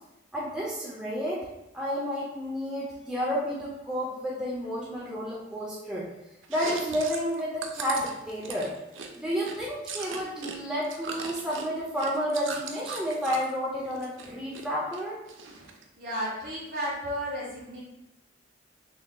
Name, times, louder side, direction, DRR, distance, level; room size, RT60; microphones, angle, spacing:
voice 1, 0.3-1.5 1.7-6.1 6.5-8.7 9.2-15.2, equal, 5° right, -6 dB, 0.5 m, -31 dB
Chewing mastication, 6.4-10.6 10.8-13.5 13.9-14.7 14.9-15.8, right 5 dB, 80° right, 0.5 m, -38 dB
voice 2, 15.6-17.8, equal, 50° right, -5 dB, 1.3 m, -34 dB
6.1 x 2.8 x 2.2 m, 0.92 s
head